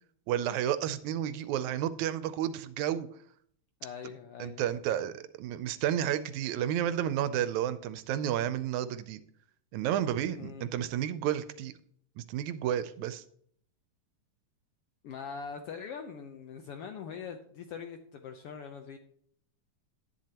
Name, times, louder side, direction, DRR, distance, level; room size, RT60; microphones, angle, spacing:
voice 1, 0.3-3.1 4.4-9.2 9.7-11.7 12.2-13.2, right 10 dB, 80° right, 13 dB, 1.9 m, -31 dB
voice 2, 3.8-4.6 10.3-10.7 15.0-19.0, left 6 dB, 75° left, 5 dB, 1.4 m, -42 dB
10.5 x 10.5 x 2.9 m, 0.62 s
omnidirectional pair, 3.4 m